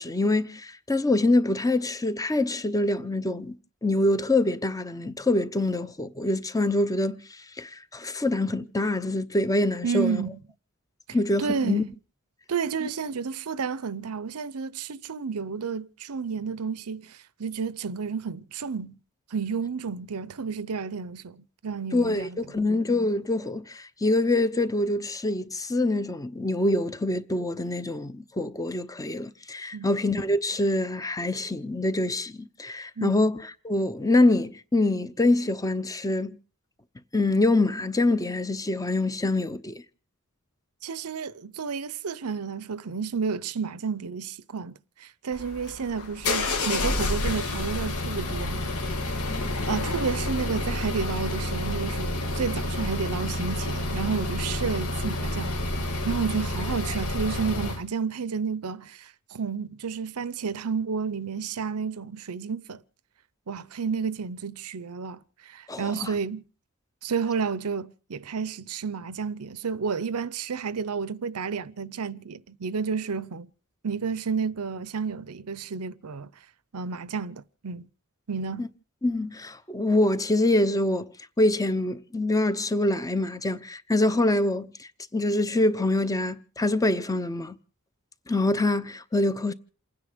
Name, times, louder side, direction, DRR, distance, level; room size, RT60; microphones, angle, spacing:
voice 1, 0.0-3.6 3.8-7.2 7.6-10.2 11.1-11.8 12.8-12.9 21.9-36.4 37.1-39.8 65.7-66.1 78.6-78.7 79.0-81.1 81.4-84.7 85.1-87.6 88.3-89.5, left 2 dB, 15° left, 0.8 m, -25 dB
voice 2, 9.8-10.4 11.4-11.9 12.5-19.0 19.3-22.7 29.7-29.9 33.0-33.2 40.8-48.8 49.1-49.2 49.6-55.5 56.1-62.8 63.5-66.4 67.0-73.5 73.8-76.3 76.7-77.9 78.3-78.7, right 5 dB, 80° right, 0.7 m, -31 dB
sound 1, 45.3-57.8, left 2 dB, 70° left, 1.6 m, -29 dB
28.5 x 9.8 x 5.1 m
head